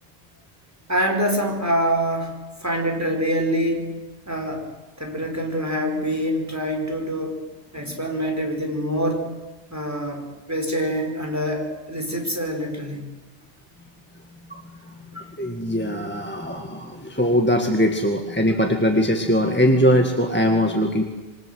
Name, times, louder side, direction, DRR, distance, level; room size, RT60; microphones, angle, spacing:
voice 1, 0.9-4.0 4.3-4.7 5.0-7.4 7.7-9.3 9.7-13.1, equal, 15° right, 2 dB, 4.6 m, -25 dB
voice 2, 14.9-21.0, equal, 10° left, 3 dB, 1.9 m, -21 dB
27.0 x 23.0 x 7.9 m, 1.2 s
omnidirectional pair, 1.2 m